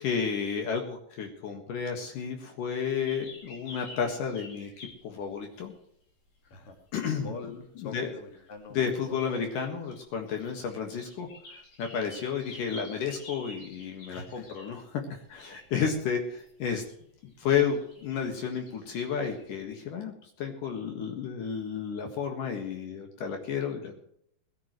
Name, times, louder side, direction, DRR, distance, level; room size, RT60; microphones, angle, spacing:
voice 1, 0.0-5.7 6.9-7.3 7.8-8.1 8.7-16.8 17.4-24.1, left 7 dB, 70° left, 3 dB, 3.2 m, -32 dB
sound 1, 3.1-5.8 6.5-6.9 8.4-8.5 8.8-14.8 15.2-16.9 17.2-19.6, left 2 dB, 85° left, 7.2 m, -50 dB
voice 2, 7.1-9.2 14.1-14.5, left 4 dB, 45° left, 4 dB, 3.1 m, -44 dB
21.5 x 13.5 x 3.1 m, 0.70 s
omnidirectional pair, 4.0 m